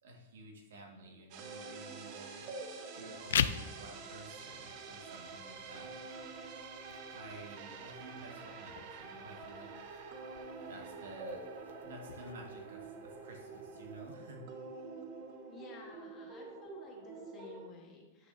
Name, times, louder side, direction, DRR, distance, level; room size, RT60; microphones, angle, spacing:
voice 1, 0.0-2.5 2.9-5.9 7.1-9.7 10.6-11.4 11.8-14.4, right 2 dB, 80° right, 1 dB, 1.8 m, -51 dB
sound 1, 1.3-17.7, right 4 dB, 40° right, 0.9 m, -47 dB
sound 2, 3.1-14.1, left 9 dB, 85° left, 0.4 m, -42 dB
voice 2, 15.5-18.3, left 4 dB, 25° left, 0 dB, 1.4 m, -53 dB
10.0 x 5.8 x 2.7 m, 1.2 s
supercardioid pair, 155°, 0 cm